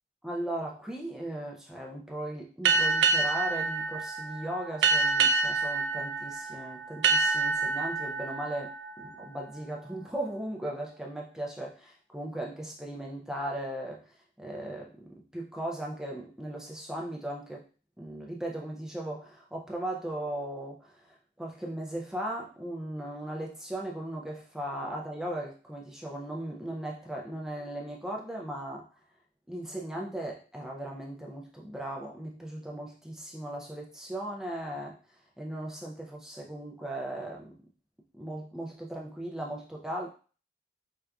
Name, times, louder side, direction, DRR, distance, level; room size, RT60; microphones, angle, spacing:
voice 1, 0.2-17.7 18.0-28.9 29.5-35.0 35.4-37.6 38.1-40.1, right 1 dB, 5° right, -2 dB, 0.4 m, -37 dB
sound 1, 2.7-9.9, right 4 dB, 85° right, 0.4 m, -27 dB
4.6 x 2.4 x 2.2 m, 0.38 s
head